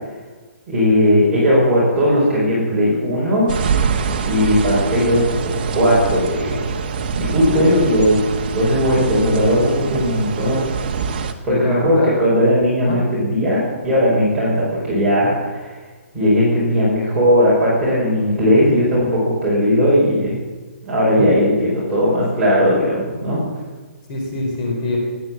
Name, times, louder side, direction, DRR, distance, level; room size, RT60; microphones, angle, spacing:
voice 1, 0.7-3.5 4.2-6.6 7.1-8.2 8.5-10.7 11.4-15.7 16.1-20.4 20.8-23.4, equal, 10° right, -9 dB, 5.2 m, -17 dB
sound 1, 3.5-11.3, right 6 dB, 35° right, 1.2 m, -24 dB
voice 2, 11.5-12.1 12.8-13.0 21.2-21.3 24.1-25.0, left 2 dB, 30° left, 0 dB, 4.0 m, -23 dB
19.5 x 9.4 x 7.6 m, 1.3 s
hypercardioid pair, 165°, 8 cm